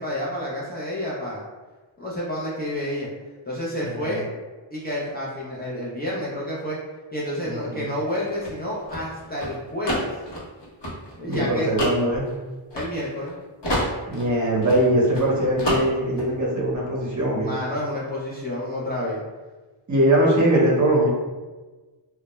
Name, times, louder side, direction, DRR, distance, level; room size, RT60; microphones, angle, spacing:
voice 1, 0.0-1.4 2.0-3.1 3.4-4.2 4.7-6.8 7.1-10.1 11.2-11.7 12.7-13.3 17.4-19.2, left 1 dB, 20° left, -7 dB, 0.5 m, -29 dB
voice 2, 3.8-4.1 7.4-7.8 11.2-12.2 14.1-17.5 19.9-21.1, right 1 dB, 35° right, -4 dB, 0.7 m, -21 dB
sound 1, 8.0-13.3 13.6-15.3 15.6-16.3, equal, 55° left, 0.9 m, -29 dB
2.2 x 2.0 x 2.9 m, 1.3 s
wide cardioid pair, 80°, 49 cm